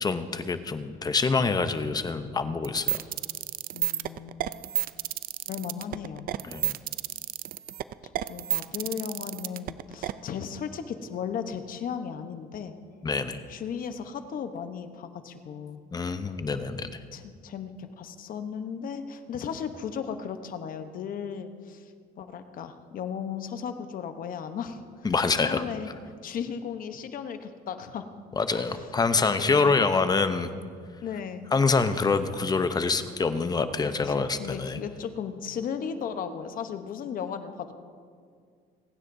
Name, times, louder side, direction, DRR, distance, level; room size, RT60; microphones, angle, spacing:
voice 1, 0.0-3.0 6.4-6.7 13.0-13.4 15.9-17.0 25.0-25.6 28.4-30.5 31.5-34.8, left 4 dB, 25° left, 10 dB, 0.7 m, -26 dB
sound 1, 2.6-10.1, right 13 dB, 60° right, 0.4 m, -30 dB
voice 2, 3.7-4.5 5.5-6.3 8.0-12.7 13.5-15.8 17.1-21.9 22.2-24.8 25.4-25.9 26.2-28.1 28.5-28.9 29.2-29.9 31.0-31.5 34.0-37.7, left 7 dB, 55° left, 9 dB, 1.0 m, -36 dB
28.0 x 9.6 x 2.7 m, 2.1 s
cardioid pair, 110°, 17 cm